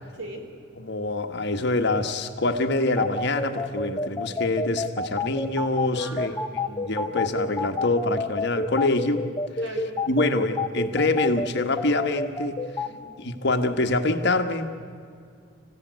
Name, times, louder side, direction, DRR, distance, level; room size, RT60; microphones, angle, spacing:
voice 1, 0.1-0.4 5.9-6.8 9.6-10.4 12.9-13.1, right 1 dB, 75° right, 5 dB, 3.8 m, -40 dB
voice 2, 0.8-6.3 6.7-9.2 10.1-12.6 13.2-14.7, left 2 dB, 55° left, 7 dB, 1.5 m, -25 dB
sound 1, 3.0-12.9, left 3 dB, 20° left, 1.0 m, -28 dB
27.0 x 15.5 x 9.4 m, 2.3 s
head